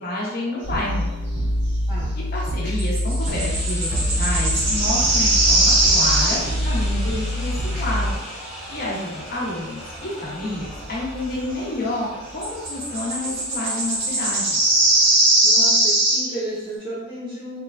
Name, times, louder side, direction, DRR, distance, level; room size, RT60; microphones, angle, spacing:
voice 1, 0.0-1.1 2.3-8.1 8.7-12.1 12.3-14.6, left 2 dB, 50° left, -4 dB, 0.7 m, -29 dB
sound 1, 0.6-8.1, equal, 30° left, 1.0 m, -25 dB
sound 2, 2.8-6.7 12.4-16.3, right 2 dB, 75° right, 1.0 m, -20 dB
sound 3, 3.2-15.2, equal, ahead, 0.8 m, -38 dB
voice 2, 15.4-17.6, right 1 dB, 20° right, -11 dB, 0.5 m, -32 dB
3.0 x 2.1 x 2.3 m, 1.0 s
head